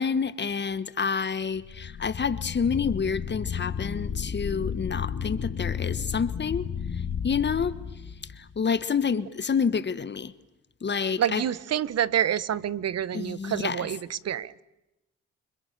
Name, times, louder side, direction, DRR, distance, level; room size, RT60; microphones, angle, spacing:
voice 1, 0.0-10.3 10.8-11.4 13.1-13.9, left 6 dB, 35° left, 1.4 m, -29 dB
sound 1, 1.6-8.6, left 7 dB, 50° left, 3.1 m, -33 dB
voice 2, 11.2-14.6, right 10 dB, 55° right, 1.1 m, -28 dB
29.5 x 26.0 x 6.8 m
cardioid pair, 90°, 30 cm